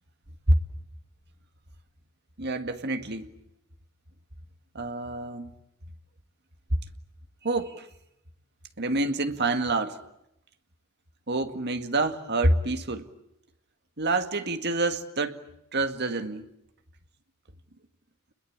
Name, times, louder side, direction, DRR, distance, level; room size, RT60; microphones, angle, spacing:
voice 1, 2.4-3.3 4.7-5.5 7.4-7.9 8.8-10.0 11.3-13.1 14.0-15.4 15.7-16.5, right 2 dB, 50° right, 2.0 m, -27 dB
29.5 x 21.5 x 8.7 m
head